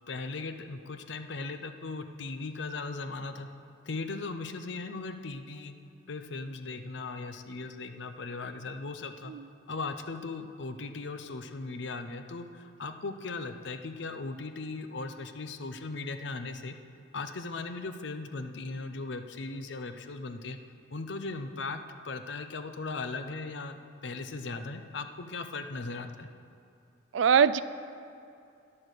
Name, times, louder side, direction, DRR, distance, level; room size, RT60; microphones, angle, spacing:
voice 1, 0.1-3.5 3.8-5.7 6.1-9.3 9.7-16.8 17.1-20.6 20.9-21.8 22.0-23.8 24.0-26.3, left 3 dB, 65° left, 8 dB, 0.6 m, -38 dB
voice 2, 27.1-27.6, right 7 dB, 70° right, 16 dB, 0.3 m, -22 dB
11.0 x 8.6 x 6.6 m, 2.6 s
head